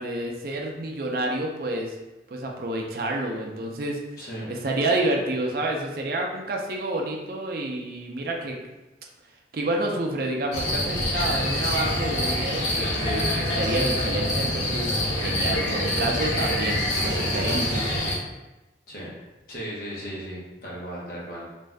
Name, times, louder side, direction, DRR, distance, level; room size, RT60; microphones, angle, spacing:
voice 1, 0.0-2.0 2.3-4.0 4.5-8.6 9.5-14.9 15.2-18.0, right 2 dB, 55° right, 1 dB, 0.4 m, -29 dB
voice 2, 4.2-4.6 15.4-15.8 18.9-19.1 19.5-21.5, equal, 55° left, -5 dB, 0.8 m, -36 dB
sound 1, 10.5-18.1, left 1 dB, 85° left, 0.7 m, -26 dB
2.5 x 2.3 x 3.3 m, 1.0 s
head